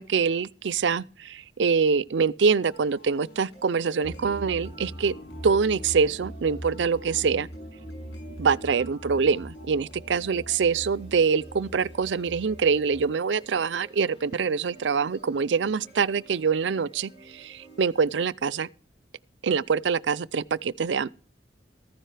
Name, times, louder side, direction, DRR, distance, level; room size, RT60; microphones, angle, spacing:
voice 1, 0.0-5.2 5.4-7.5 8.4-18.7 19.4-21.1, right 5 dB, 80° right, 0.5 m, -25 dB
sound 1, 2.6-18.6, right 2 dB, 85° left, 6.6 m, -51 dB
sound 2, 4.0-13.0, equal, 60° left, 3.7 m, -41 dB
14.5 x 14.5 x 3.4 m
head